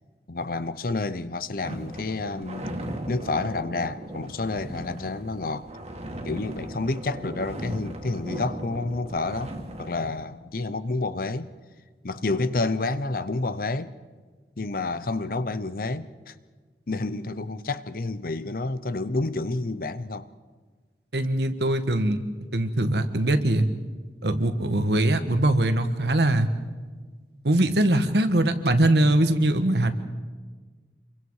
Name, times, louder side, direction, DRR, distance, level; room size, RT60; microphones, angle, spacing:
voice 1, 0.3-2.7 3.1-5.7 6.2-11.5 12.0-13.9 14.6-16.3 16.9-20.3, left 3 dB, 55° left, 0.8 m, -29 dB
sound 1, 1.6-10.2, equal, 40° right, 2.3 m, -37 dB
voice 2, 21.1-22.2 22.5-23.7 24.2-26.5 27.4-29.9, right 1 dB, 70° right, 1.5 m, -22 dB
27.5 x 23.5 x 4.8 m
head